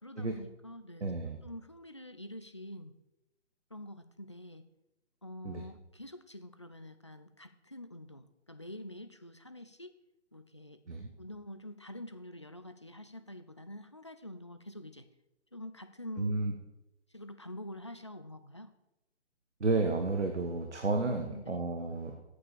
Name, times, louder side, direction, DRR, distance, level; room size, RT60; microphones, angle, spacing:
voice 1, 0.0-1.1 1.4-2.9 3.7-4.6 5.2-9.9 10.3-10.8 11.2-15.1 15.5-16.4 17.1-18.7 21.1-21.6, left 1 dB, 25° left, 10 dB, 0.3 m, -46 dB
voice 2, 1.0-1.4 5.4-5.6 10.9-11.1 16.2-16.5 19.6-22.2, right 3 dB, 75° right, 4 dB, 1.5 m, -32 dB
8.6 x 8.4 x 6.8 m, 0.92 s
figure-of-eight pair, 140°, 35 cm